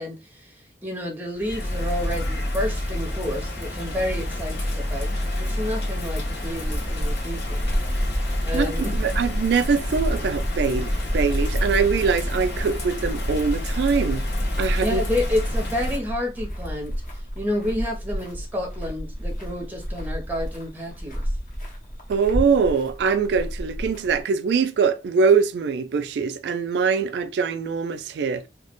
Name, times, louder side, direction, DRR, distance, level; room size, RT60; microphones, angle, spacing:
voice 1, 0.0-7.7 8.4-8.9 14.8-16.9 17.4-21.3, left 1 dB, 10° right, 0.5 m, -30 dB
Bird vocalization bird call bird song / Rain, 1.3-16.0, left 1 dB, 80° left, 1.0 m, -28 dB
sound 1, 6.4-24.2, equal, 45° left, 0.7 m, -31 dB
voice 2, 8.9-14.2 14.6-15.0 22.1-28.5, right 5 dB, 80° right, 0.3 m, -23 dB
2.3 x 2.0 x 2.9 m
head